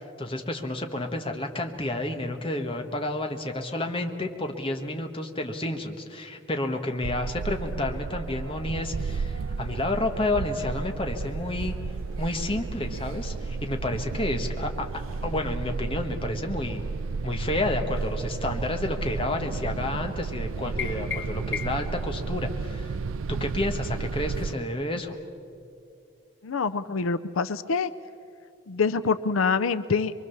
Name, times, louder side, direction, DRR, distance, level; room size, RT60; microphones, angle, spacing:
voice 1, 0.2-11.7 12.2-14.9 15.2-16.8 17.2-22.9 23.3-25.2, left 1 dB, 25° left, 4 dB, 1.4 m, -30 dB
sound 1, 7.0-24.5, right 4 dB, 90° right, 0.5 m, -32 dB
sound 2, 9.8-15.9, equal, 20° right, 7.8 m, -52 dB
sound 3, 20.8-22.0, left 7 dB, 60° left, 4.6 m, -34 dB
voice 2, 26.4-27.9 28.7-30.1, left 5 dB, 90° left, 13 dB, 0.6 m, -25 dB
24.5 x 23.0 x 7.1 m, 2.5 s
head